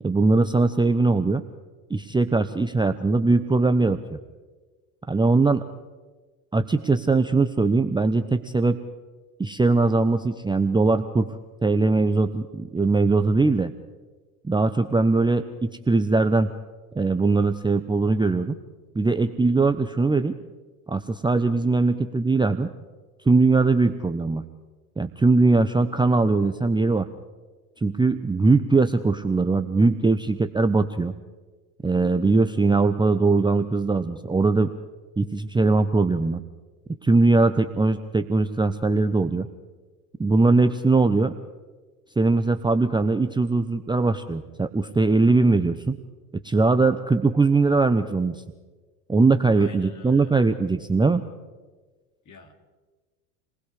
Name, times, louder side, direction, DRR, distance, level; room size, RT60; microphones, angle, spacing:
voice 1, 0.0-1.4 1.9-4.2 5.1-5.6 6.5-8.8 9.4-11.3 11.6-13.7 14.4-16.5 16.9-18.6 18.9-20.4 20.9-22.7 23.3-24.4 25.0-27.1 27.8-31.1 31.8-34.7 35.2-36.4 37.0-39.5 40.2-41.3 42.2-46.0 46.4-48.4 49.1-51.2, right 3 dB, 10° right, 8 dB, 0.8 m, -21 dB
voice 2, 49.5-50.3 52.3-52.5, left 5 dB, 35° left, 4 dB, 3.5 m, -47 dB
29.0 x 20.0 x 5.0 m, 1.3 s
hypercardioid pair, 80°, 49 cm